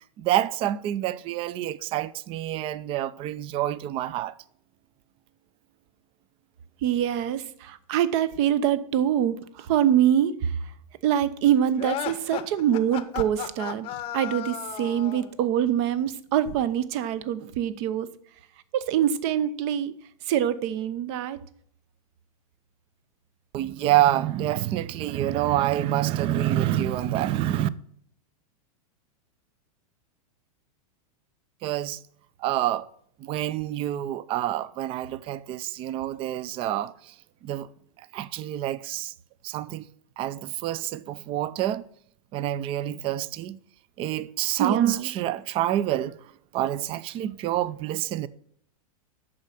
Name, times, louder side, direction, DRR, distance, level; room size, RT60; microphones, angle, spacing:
voice 1, 0.2-4.3 23.5-27.7 31.6-32.0 32.4-32.9 33.2-37.1 37.4-37.7 38.1-39.1 39.4-39.9 40.2-41.9 42.3-43.6 44.0-46.2 46.5-48.3, right 13 dB, 30° right, 0.5 m, -27 dB
voice 2, 6.8-10.5 11.0-13.9 14.1-18.1 18.7-19.9 20.3-21.4 44.6-45.1, right 10 dB, 50° right, 0.9 m, -24 dB
sound 1, 11.8-15.3, left 12 dB, 30° left, 0.7 m, -34 dB
8.7 x 6.5 x 5.8 m
hypercardioid pair, 135°, 19 cm